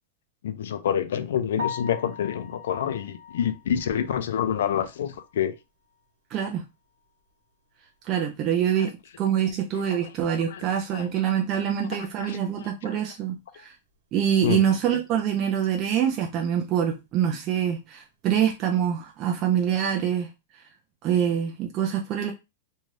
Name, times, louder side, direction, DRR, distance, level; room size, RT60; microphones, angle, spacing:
voice 1, 0.4-5.5 10.5-10.6 10.9-11.1 12.2-12.7 14.4-14.6, left 9 dB, 75° left, 0.4 m, -27 dB
Piano, 1.6-5.5 5.9-6.0 6.5-6.6 7.0-7.1 10.2-10.3 18.7-19.0, left 6 dB, 75° right, 1.0 m, -40 dB
voice 2, 6.3-6.6 8.0-13.7 14.1-20.3 21.0-22.3, right 9 dB, 25° right, 0.3 m, -25 dB
2.6 x 2.3 x 3.2 m
supercardioid pair, 165°, 0 cm